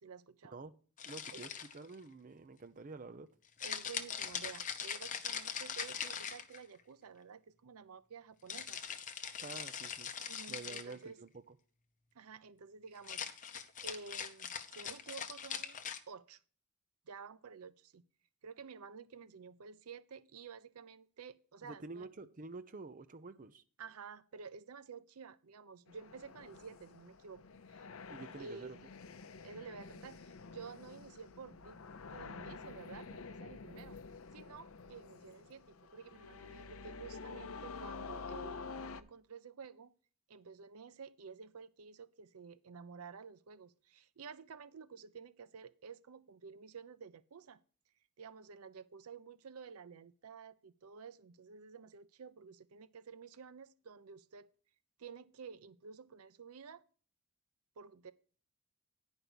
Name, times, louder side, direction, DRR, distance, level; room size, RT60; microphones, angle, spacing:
voice 1, 0.0-0.6 1.3-1.5 3.6-8.8 10.3-11.2 12.1-16.4 17.1-18.0 18.4-22.1 23.8-27.4 27.7-27.9 28.4-28.8 29.4-31.8 32.1-34.0 34.3-38.6 38.9-39.9 40.3-47.6 48.2-54.5 55.0-56.8 57.8-58.1, right 5 dB, 80° right, 0.6 m, -52 dB
sound 1, 1.0-1.9 3.6-6.8 8.5-11.0 13.0-16.0, left 7 dB, 35° left, 0.8 m, -42 dB
voice 2, 1.0-3.3 9.4-10.1 10.5-11.6 21.6-23.6 28.1-28.8, right 3 dB, 35° right, 0.6 m, -49 dB
sound 2, 25.9-39.0, left 4 dB, 65° left, 0.6 m, -49 dB
10.0 x 5.3 x 6.1 m
head